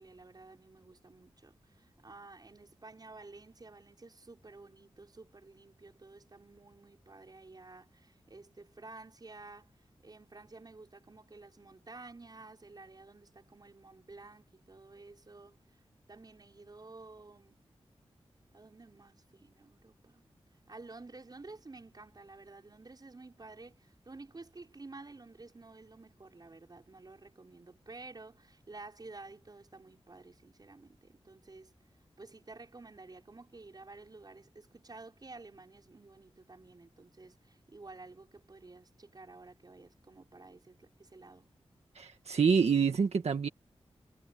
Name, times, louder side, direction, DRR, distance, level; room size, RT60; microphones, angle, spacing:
voice 1, 0.0-9.7 10.0-15.6 16.1-17.6 18.5-20.2 20.7-31.7 32.2-41.5, right 3 dB, 40° right, 5.7 m, -52 dB
voice 2, 42.0-43.5, right 6 dB, 80° right, 1.7 m, -27 dB
wide cardioid pair, 105°, 11 cm